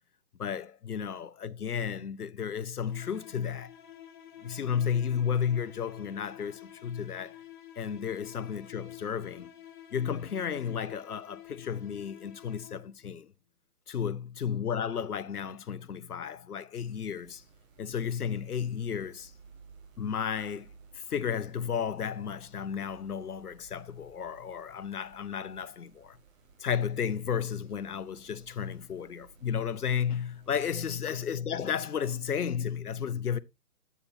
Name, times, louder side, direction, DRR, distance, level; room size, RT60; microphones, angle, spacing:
voice 1, 0.4-3.7 4.4-7.4 7.8-9.5 9.9-13.3 13.9-17.4 17.8-19.3 20.0-20.7 20.9-26.2 26.6-33.4, left 7 dB, 70° left, 0.8 m, -33 dB
sound 1, 2.9-13.1, left 11 dB, 30° left, 1.0 m, -50 dB
sound 2, 16.8-31.0, right 5 dB, 5° right, 0.6 m, -58 dB
11.0 x 8.4 x 2.7 m
figure-of-eight pair, 130°, 47 cm